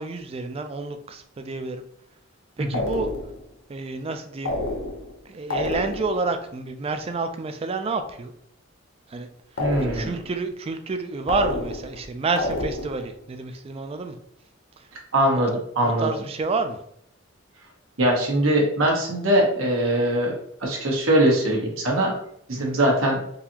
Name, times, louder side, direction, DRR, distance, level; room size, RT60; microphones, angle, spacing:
voice 1, 0.0-1.8 2.6-3.1 3.7-4.6 5.3-8.3 9.1-9.3 9.8-14.2 14.8-14.9 15.8-16.8, right 3 dB, 30° right, 8 dB, 0.3 m, -29 dB
sound 1, 2.7-3.4 4.4-5.2 5.5-6.2 9.6-10.3 11.3-12.0 12.4-13.1, left 2 dB, 70° left, 0.7 m, -29 dB
voice 2, 9.6-10.1 15.1-15.5 15.7-16.1 18.0-20.3 20.6-22.1 22.5-23.2, right 1 dB, 85° right, -1 dB, 1.1 m, -21 dB
3.9 x 2.7 x 2.8 m, 0.71 s
head